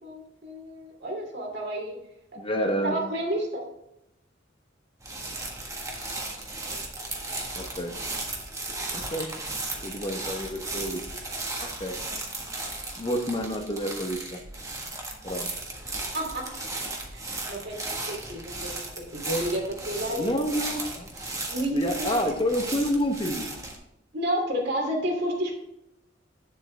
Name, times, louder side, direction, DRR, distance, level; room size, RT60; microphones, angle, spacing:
voice 1, 0.0-2.0 2.8-3.6 16.1-16.4 17.5-18.8 19.1-20.4 21.5-22.2 24.1-25.5, right 1 dB, 60° right, 0 dB, 2.6 m, -30 dB
voice 2, 2.3-3.0 7.5-7.9 8.9-9.3 9.8-11.1 11.6-11.9 13.0-14.4 15.2-15.5 20.1-21.1 21.7-23.5, equal, 30° left, 4 dB, 0.9 m, -29 dB
sound 1, 5.0-23.8, right 2 dB, 15° right, 1.4 m, -35 dB
8.6 x 7.5 x 3.3 m, 0.86 s
head